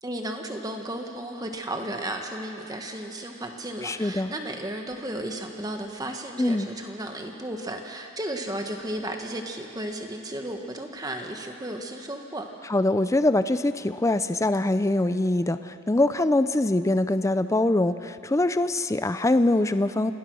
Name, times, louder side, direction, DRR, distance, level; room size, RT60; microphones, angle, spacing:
voice 1, 0.0-12.5, right 1 dB, 15° right, 4 dB, 1.4 m, -34 dB
voice 2, 3.8-4.3 6.4-6.7 12.7-20.1, left 2 dB, 15° left, 12 dB, 0.4 m, -23 dB
27.5 x 18.5 x 6.3 m, 2.8 s
head